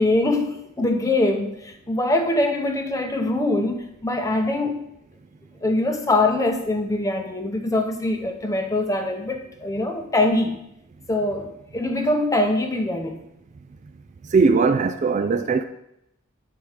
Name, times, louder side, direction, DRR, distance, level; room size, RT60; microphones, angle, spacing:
voice 1, 0.0-4.8 5.6-10.6 11.1-13.2, left 2 dB, 15° left, 0.7 m, -23 dB
voice 2, 14.3-15.6, right 4 dB, 35° right, 0.3 m, -19 dB
8.8 x 4.7 x 4.8 m
head